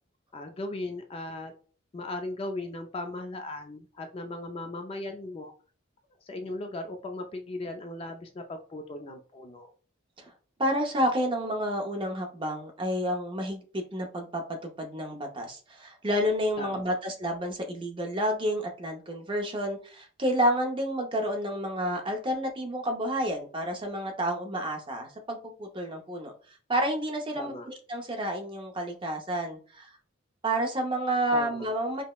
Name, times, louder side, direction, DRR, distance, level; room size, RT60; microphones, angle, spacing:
voice 1, 0.3-1.5 1.9-5.5 6.2-9.7 16.6-16.9 27.3-27.7 31.3-31.7, left 2 dB, 25° left, 5 dB, 0.3 m, -37 dB
voice 2, 10.6-29.9 30.4-32.0, equal, 25° right, 3 dB, 0.6 m, -30 dB
4.9 x 2.0 x 2.3 m, 0.39 s
head